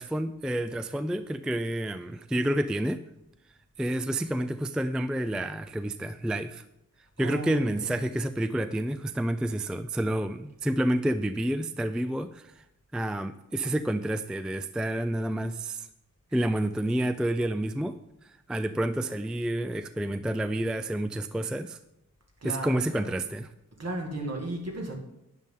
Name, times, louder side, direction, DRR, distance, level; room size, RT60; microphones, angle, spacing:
voice 1, 0.0-3.0 3.8-6.6 7.2-12.5 12.9-15.9 16.3-17.9 18.2-21.8 22.4-23.5, right 1 dB, 5° right, 10 dB, 0.3 m, -29 dB
voice 2, 7.2-8.0 22.4-23.1 23.8-24.9, right 2 dB, 50° right, 1 dB, 2.1 m, -35 dB
12.0 x 9.1 x 3.8 m, 0.87 s
wide cardioid pair, 100°, 33 cm